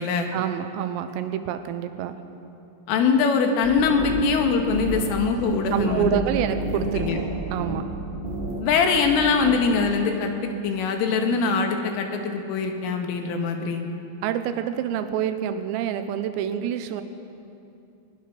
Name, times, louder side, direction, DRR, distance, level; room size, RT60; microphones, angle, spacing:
voice 1, 0.3-2.3 5.7-7.9 14.2-17.0, right 10 dB, 85° right, 9 dB, 3.6 m, -27 dB
voice 2, 2.9-6.2 6.7-7.2 8.6-13.8, left 5 dB, 75° left, 4 dB, 4.1 m, -23 dB
sound 1, 3.6-9.6, right 1 dB, 30° right, 1.0 m, -32 dB
21.0 x 20.5 x 6.0 m, 2.7 s
omnidirectional pair, 5.9 m